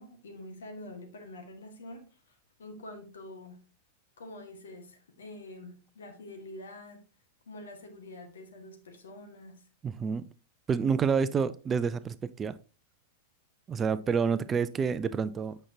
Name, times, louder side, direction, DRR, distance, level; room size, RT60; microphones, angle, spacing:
voice 1, 0.0-3.6 4.2-7.0 7.5-9.6, left 1 dB, 70° left, 1.7 m, -46 dB
voice 2, 9.8-10.3 10.7-12.6 13.7-15.6, right 6 dB, 25° right, 0.4 m, -28 dB
8.6 x 5.9 x 2.8 m
figure-of-eight pair, 95°, 0 cm